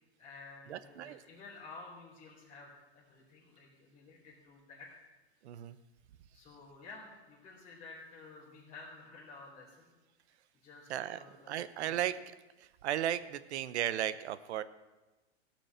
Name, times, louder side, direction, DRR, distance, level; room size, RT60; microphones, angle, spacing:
voice 1, 0.2-4.9 6.3-9.9 10.6-12.0, left 3 dB, 20° left, -9 dB, 3.1 m, -52 dB
voice 2, 0.7-1.2 5.4-5.8 10.9-11.2 11.5-12.1 12.8-14.6, right 11 dB, 80° right, 15 dB, 0.9 m, -35 dB
16.0 x 6.1 x 7.4 m, 1.1 s
supercardioid pair, 160°, 33 cm